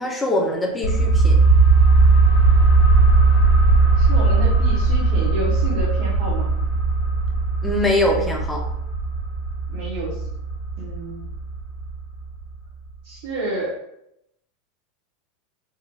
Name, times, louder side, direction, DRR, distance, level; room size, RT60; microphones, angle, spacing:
voice 1, 0.0-1.4 7.6-8.6, left 1 dB, 5° left, -1 dB, 0.5 m, -22 dB
sound 1, 0.8-12.2 12.5-12.6, right 3 dB, 70° left, 1.1 m, -18 dB
voice 2, 3.9-6.5 9.7-10.2 10.8-11.2 13.0-13.8, right 2 dB, 60° right, -6 dB, 0.9 m, -30 dB
3.3 x 2.3 x 3.6 m, 0.80 s
supercardioid pair, 170°, 0 cm